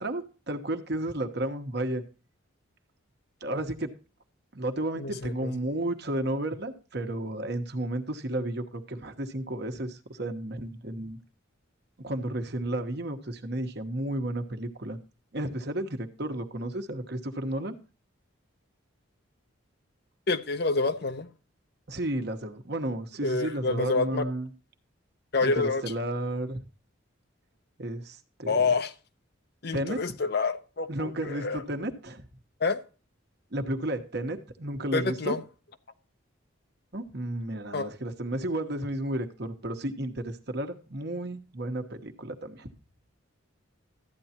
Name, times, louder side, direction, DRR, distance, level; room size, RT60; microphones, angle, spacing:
voice 1, 0.0-2.0 3.4-3.9 4.5-11.2 12.0-15.0 15.3-17.7 21.9-24.5 25.4-26.6 27.8-28.6 29.7-30.0 30.9-32.2 33.5-35.3 36.9-42.7, right 1 dB, 55° right, 1.2 m, -32 dB
voice 2, 5.0-5.5 20.3-21.3 23.2-24.2 25.3-25.8 28.5-28.9 29.6-31.6 32.6-32.8 34.9-35.4 37.7-37.9, left 3 dB, 50° left, 0.7 m, -27 dB
13.0 x 9.3 x 2.9 m
head